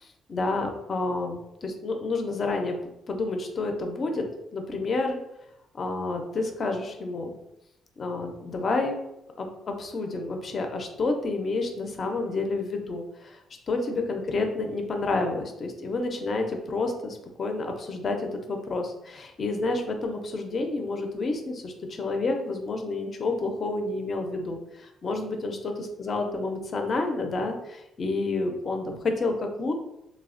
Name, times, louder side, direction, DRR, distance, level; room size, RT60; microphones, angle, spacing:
voice 1, 0.0-2.8 3.1-4.3 4.5-5.2 5.7-7.3 8.0-9.0 9.4-13.4 13.7-29.7, left 3 dB, 45° left, 4 dB, 0.4 m, -29 dB
3.2 x 2.0 x 2.5 m, 0.85 s
cardioid pair, 90°, 0 cm